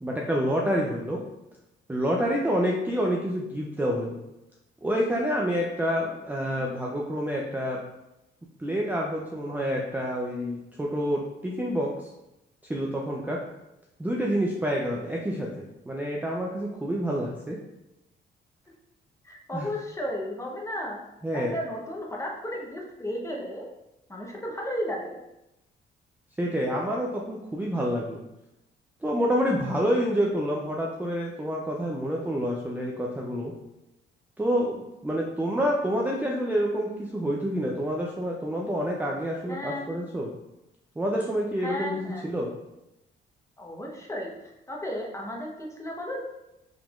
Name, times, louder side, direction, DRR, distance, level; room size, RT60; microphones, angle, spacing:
voice 1, 0.0-1.2 1.9-4.2 4.8-7.8 8.6-12.1 12.7-13.4 14.0-17.6 19.5-19.7 21.2-21.6 26.4-28.2 29.0-33.5 34.4-40.3 41.0-42.5, equal, 10° right, -2 dB, 0.5 m, -28 dB
voice 2, 19.2-21.0 21.3-23.7 24.1-25.2 39.5-40.0 41.6-42.3 43.6-44.3 44.7-46.2, equal, 15° left, -1 dB, 0.9 m, -34 dB
4.9 x 3.5 x 2.4 m, 0.92 s
cardioid pair, 90°, 20 cm